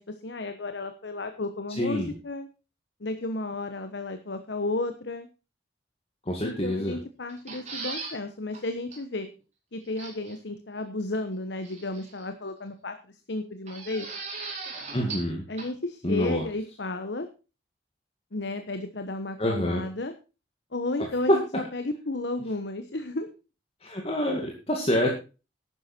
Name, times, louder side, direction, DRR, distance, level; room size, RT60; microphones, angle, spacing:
voice 1, 0.0-2.5 3.0-5.3 6.4-9.3 9.7-14.1 15.5-17.3 18.3-20.1 20.7-21.4 21.7-23.3, left 2 dB, 70° left, 8 dB, 1.1 m, -33 dB
voice 2, 1.8-2.1 6.3-7.0 14.9-15.4 16.0-16.4 19.4-19.8 21.3-21.4 23.8-25.1, equal, 30° left, 0 dB, 2.2 m, -26 dB
sound 1, 7.3-8.2 8.5-8.6 8.9-9.0 10.0-10.4 11.6-12.3 13.7-15.3 15.6-15.7, right 4 dB, 40° right, 4.5 m, -38 dB
12.0 x 9.7 x 4.4 m, 0.32 s
head